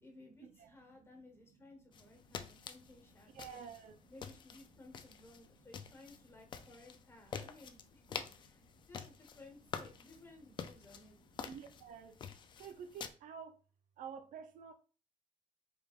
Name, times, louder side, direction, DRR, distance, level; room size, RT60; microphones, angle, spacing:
voice 1, 0.0-3.6 4.1-11.2, left 2 dB, 20° left, 1.2 m, -58 dB
sound 1, 1.9-13.1, left 7 dB, 35° left, 0.4 m, -48 dB
voice 2, 3.0-4.1 6.2-6.3 7.3-7.4 8.7-8.8 11.4-12.2 12.6-13.6 14.0-14.7, right 7 dB, 70° right, 0.5 m, -50 dB
4.9 x 3.5 x 2.4 m
cardioid pair, 160°, 14 cm